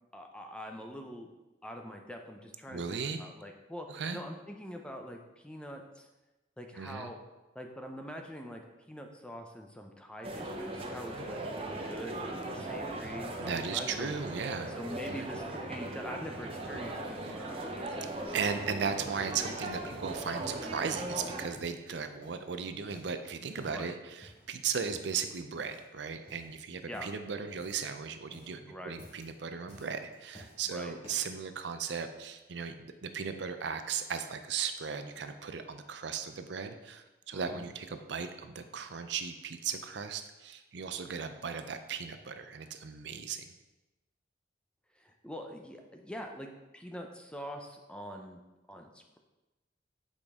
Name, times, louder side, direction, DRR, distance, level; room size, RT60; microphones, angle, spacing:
voice 1, 0.1-1.3 1.6-6.1 6.6-7.2 7.5-8.6 8.9-14.1 14.7-18.0 23.6-24.0 26.9-27.1 28.7-29.0 30.7-31.0 37.3-37.7 45.0-46.5 46.7-48.4 48.7-49.2, equal, 5° left, 3 dB, 0.6 m, -44 dB
voice 2, 2.7-3.2 3.9-4.2 6.8-7.1 13.0-14.7 15.1-15.3 17.2-17.7 18.3-43.5, right 6 dB, 60° right, 8 dB, 0.5 m, -37 dB
sound 1, 10.2-21.5, right 1 dB, 30° right, 0.7 m, -39 dB
sound 2, 20.9-21.8 22.2-23.2 23.5-23.9 24.2-24.5 24.9-25.3 25.6-25.9 26.2-26.5 26.9-27.9 28.2-28.6 28.9-29.3 29.7-30.6 31.0-31.4 32.0-32.1, equal, 30° left, 2.0 m, -54 dB
8.3 x 5.1 x 3.6 m, 1.0 s
head